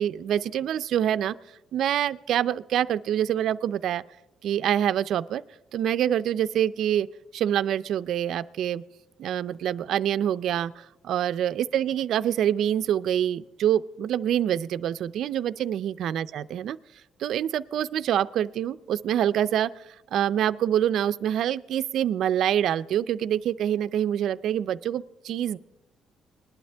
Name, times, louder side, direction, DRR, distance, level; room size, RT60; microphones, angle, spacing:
voice 1, 0.0-1.4 1.7-4.0 4.4-5.4 5.7-7.1 7.3-8.8 9.2-16.8 17.2-25.6, right 10 dB, 65° right, 14 dB, 0.4 m, -26 dB
20.0 x 11.5 x 3.4 m, 0.93 s
cardioid pair, 150°, 0 cm